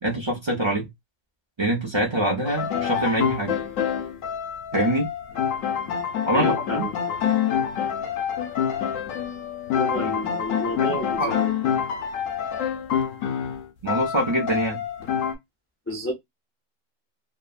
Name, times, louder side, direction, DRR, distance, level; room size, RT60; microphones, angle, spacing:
voice 1, 0.0-0.9 1.6-3.6 4.7-5.1 6.3-6.9 10.0-10.1 10.8-11.3 13.8-14.8, right 1 dB, 30° right, 0.6 m, -25 dB
sound 1, 2.4-15.3, left 8 dB, 80° left, 1.0 m, -27 dB
voice 2, 6.3-7.2 9.7-11.5 15.9-16.1, equal, 20° left, 0.4 m, -30 dB
3.0 x 2.1 x 2.3 m
omnidirectional pair, 1.4 m